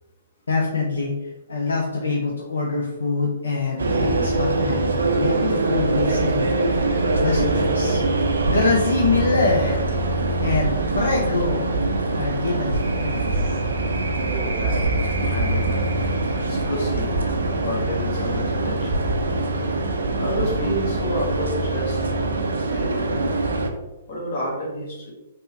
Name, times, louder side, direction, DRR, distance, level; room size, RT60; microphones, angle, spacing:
voice 1, 0.5-6.5 7.2-8.0 8.4-9.9 10.4-11.8 12.1-13.6, left 3 dB, 70° left, -2 dB, 0.4 m, -24 dB
sound 1, 3.8-23.7, right 2 dB, 70° right, 0.4 m, -23 dB
voice 2, 14.2-14.9 15.3-15.9 16.5-17.1 17.6-19.0 20.2-22.0 22.7-23.5 24.1-25.1, equal, 45° left, -2 dB, 0.9 m, -30 dB
3.5 x 2.0 x 2.7 m, 1.0 s
figure-of-eight pair, 120°, 0 cm